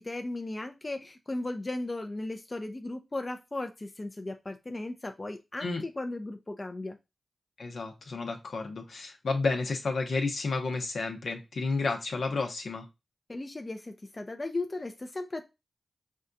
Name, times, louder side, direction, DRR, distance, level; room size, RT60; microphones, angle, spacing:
voice 1, 0.0-7.0 13.3-15.4, left 2 dB, 35° left, 6 dB, 0.6 m, -36 dB
voice 2, 7.6-12.9, left 3 dB, 75° left, 3 dB, 0.9 m, -31 dB
5.4 x 2.4 x 2.6 m, 0.24 s
cardioid pair, 40°, 0 cm